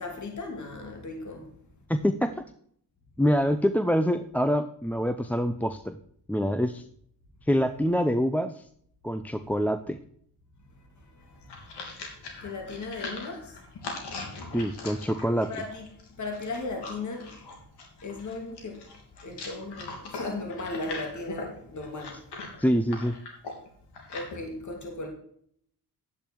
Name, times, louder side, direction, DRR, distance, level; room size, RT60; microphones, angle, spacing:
voice 1, 0.0-1.5 11.0-11.7 12.3-13.5 14.1-14.2 15.5-15.9 16.2-17.3 18.0-18.9 19.2-22.2 24.1-25.1, left 2 dB, 45° left, 2.7 m, -36 dB
voice 2, 1.9-2.4 3.2-6.0 6.3-6.8 7.5-8.6 9.0-10.0 14.5-15.5 22.6-23.2, equal, 5° left, 0.6 m, -25 dB
sound 1, 11.2-24.4, left 3 dB, 80° left, 3.3 m, -41 dB
10.5 x 8.6 x 4.6 m
cardioid pair, 80°, 40 cm